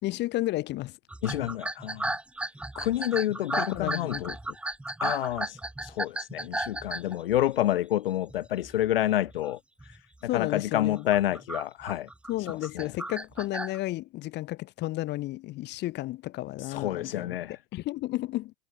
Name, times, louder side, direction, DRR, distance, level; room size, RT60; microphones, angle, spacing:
voice 1, 0.0-1.0 3.6-4.4 10.2-11.1 12.3-17.4 17.7-18.5, left 17 dB, 35° left, 3.3 m, -32 dB
sound 1, 1.1-7.7 8.3-8.7 9.1-9.4 9.8-10.0 10.6-13.8, right 2 dB, 5° right, 1.3 m, -35 dB
voice 2, 1.2-2.2 2.7-4.3 5.0-10.0 10.3-12.1 12.5-12.9 16.6-17.6, left 13 dB, 70° left, 0.9 m, -29 dB
hypercardioid pair, 115°, 29 cm